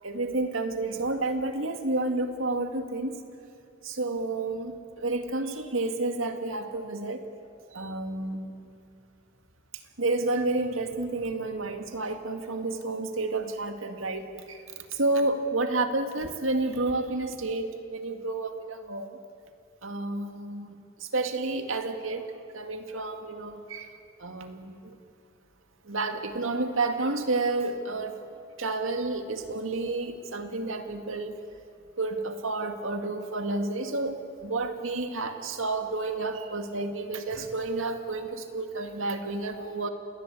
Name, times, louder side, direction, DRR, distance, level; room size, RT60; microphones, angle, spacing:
voice 1, 0.0-3.2 3.8-7.2 7.7-8.5 9.7-19.2 19.8-22.3 22.5-25.0 25.8-28.2 28.6-31.4 32.0-39.9, right 2 dB, 80° right, 6 dB, 2.1 m, -30 dB
28.5 x 20.5 x 8.4 m, 2.6 s
head